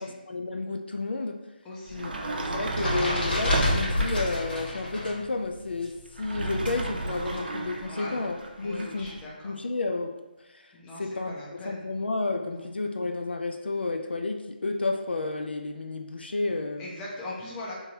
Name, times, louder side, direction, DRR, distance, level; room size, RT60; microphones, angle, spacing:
voice 1, 0.0-1.4 1.9-9.1 9.4-10.2 10.5-10.6 11.0-16.9, left 3 dB, 90° left, 4 dB, 0.4 m, -31 dB
voice 2, 1.6-2.3 7.9-8.2 8.6-9.6 10.7-11.8 12.4-12.7 16.8-17.7, left 1 dB, 10° left, -5 dB, 0.6 m, -40 dB
sound 1, 1.9-5.2 5.5-7.4, left 1 dB, 70° left, 1.5 m, -30 dB
Sliding door, 1.9-4.4 6.1-9.2, right 2 dB, 65° right, 0.5 m, -32 dB
3.6 x 2.9 x 2.7 m, 1.0 s
figure-of-eight pair, 160°, 5 cm